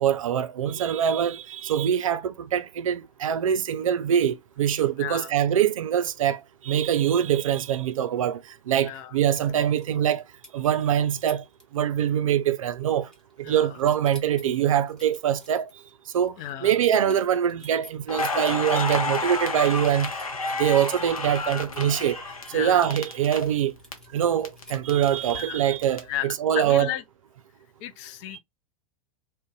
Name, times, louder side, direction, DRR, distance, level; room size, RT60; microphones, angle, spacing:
voice 1, 0.0-8.4 8.7-10.2 10.5-11.4 11.7-13.1 13.4-15.7 16.1-16.3 16.6-20.1 20.6-22.2 22.5-23.7 24.1-26.9, right 9 dB, 70° right, 0.4 m, -24 dB
voice 2, 5.0-5.3 8.8-9.1 13.4-13.7 16.4-16.7 22.5-22.8 25.4-25.6 26.1-27.0 27.8-28.4, left 12 dB, 40° left, 0.4 m, -34 dB
sound 1, 9.3-10.2 10.4-10.8 11.3-11.6 11.9-12.3 12.5-13.5 13.8-18.8 19.2-19.3 19.7-23.2 23.8-25.5, left 1 dB, 5° left, 1.1 m, -50 dB
Crackle, 18.1-23.9 24.2-26.0, left 3 dB, 85° left, 0.7 m, -31 dB
2.5 x 2.2 x 3.5 m
figure-of-eight pair, 90°, 18 cm